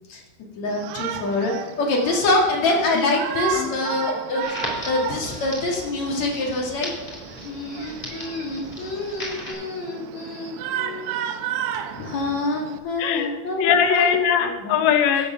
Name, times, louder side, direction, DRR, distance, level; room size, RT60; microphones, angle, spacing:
voice 1, 0.6-1.5 1.8-4.4 4.9-6.9 7.4-11.1 11.9-14.1 14.6-14.8, left 2 dB, 45° left, -1 dB, 2.7 m, -25 dB
Shout, 0.7-12.8, right 9 dB, 90° right, 2.3 m, -33 dB
voice 2, 3.5-3.9 13.0-15.3, left 8 dB, 75° left, 7 dB, 3.0 m, -21 dB
Crackle, 4.4-9.5, left 1 dB, 15° left, 2.6 m, -37 dB
14.5 x 8.3 x 5.8 m, 1.2 s
omnidirectional pair, 5.3 m